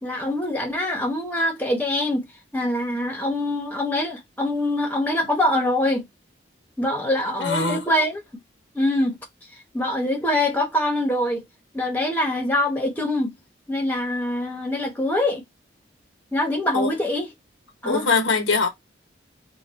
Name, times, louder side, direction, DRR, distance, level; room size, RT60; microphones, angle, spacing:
voice 1, 0.0-2.3 2.5-6.1 6.8-8.2 8.7-9.2 9.7-11.4 11.7-13.4 13.7-15.4 16.3-17.3 17.8-18.1, left 1 dB, 10° left, 0.9 m, -24 dB
voice 2, 7.4-7.8 16.7-16.9 17.8-18.7, left 4 dB, 85° left, 1.1 m, -22 dB
3.9 x 2.3 x 4.0 m
head